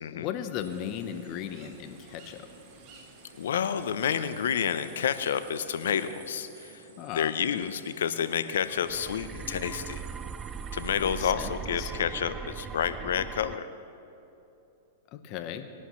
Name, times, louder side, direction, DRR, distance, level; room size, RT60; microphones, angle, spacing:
voice 1, 0.1-2.5 7.0-7.3 11.0-11.9 15.1-15.7, left 9 dB, 45° left, 9 dB, 0.9 m, -37 dB
sound 1, 0.6-11.1, right 4 dB, 65° right, 2.8 m, -52 dB
sound 2, 0.7-6.0, right 4 dB, 40° right, 1.6 m, -57 dB
voice 2, 3.4-10.0 10.7-13.7, left 8 dB, 80° left, 12 dB, 0.7 m, -29 dB
sound 3, 8.6-13.6, right 7 dB, 20° right, 0.3 m, -39 dB
20.5 x 11.0 x 3.2 m, 2.8 s
hypercardioid pair, 120°, 0 cm